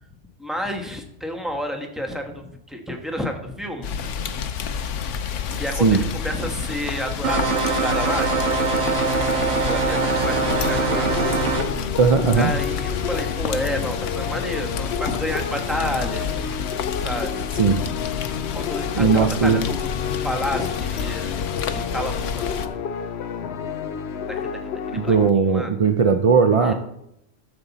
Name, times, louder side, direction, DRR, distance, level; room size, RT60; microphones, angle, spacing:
voice 1, 0.4-4.0 5.6-8.7 9.4-11.1 12.3-16.5 17.0-17.8 18.5-21.3 21.7-22.9 24.3-24.6 24.9-25.2 25.5-25.7 26.6-26.7, equal, ahead, 3 dB, 1.1 m, -30 dB
Rain, 3.8-22.7, left 6 dB, 90° left, 1.1 m, -29 dB
sound 1, 7.2-11.6, right 4 dB, 80° right, 1.6 m, -22 dB
sound 2, 10.3-25.3, left 7 dB, 70° left, 0.9 m, -30 dB
voice 2, 12.0-12.5 17.6-17.9 19.0-19.6 24.9-26.7, right 5 dB, 55° right, 6 dB, 0.4 m, -18 dB
12.5 x 7.1 x 4.0 m, 0.81 s
omnidirectional pair, 1.2 m